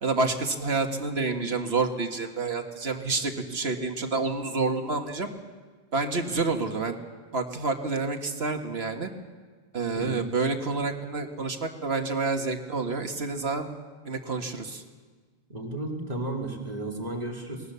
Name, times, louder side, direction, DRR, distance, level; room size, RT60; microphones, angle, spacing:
voice 1, 0.0-5.3 5.9-7.0 7.3-9.1 9.7-13.7 14.1-14.8, right 3 dB, 90° right, 4 dB, 2.0 m, -28 dB
voice 2, 15.5-17.6, right 2 dB, 40° right, 0 dB, 2.8 m, -33 dB
25.0 x 20.0 x 6.9 m, 1.5 s
omnidirectional pair, 1.0 m